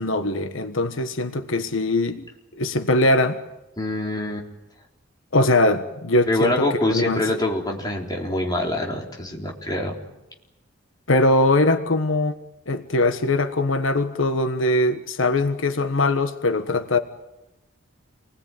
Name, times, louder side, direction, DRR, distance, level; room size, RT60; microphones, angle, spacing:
voice 1, 0.0-2.2 2.6-3.4 5.3-7.2 11.1-12.3 12.7-17.0, left 2 dB, 85° left, 1.3 m, -21 dB
voice 2, 3.8-4.5 6.3-10.0, left 1 dB, 20° left, 3.8 m, -25 dB
28.5 x 20.0 x 9.2 m
head